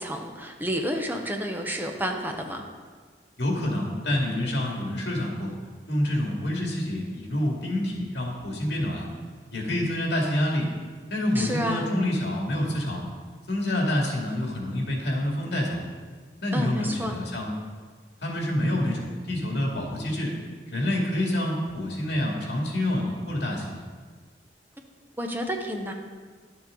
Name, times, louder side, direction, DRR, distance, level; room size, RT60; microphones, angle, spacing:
voice 1, 0.0-2.6 11.3-11.9 16.5-17.2 25.2-25.9, equal, 10° right, 2 dB, 0.8 m, -30 dB
voice 2, 3.4-5.5 5.9-9.1 9.5-10.7 11.1-13.1 13.5-15.8 16.4-17.5 18.2-20.3 20.7-23.8, left 1 dB, 70° left, -1 dB, 2.2 m, -27 dB
11.5 x 7.4 x 3.8 m, 1.5 s
head